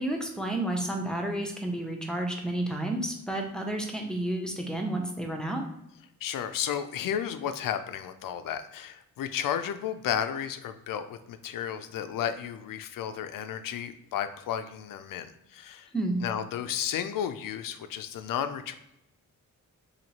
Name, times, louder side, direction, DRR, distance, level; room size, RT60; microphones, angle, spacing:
voice 1, 0.0-5.6 15.9-16.2, right 1 dB, ahead, 2 dB, 0.8 m, -31 dB
voice 2, 6.2-15.9 16.2-18.7, left 9 dB, 75° left, 10 dB, 0.5 m, -33 dB
2.9 x 2.8 x 4.1 m, 0.84 s
cardioid pair, 80°, 33 cm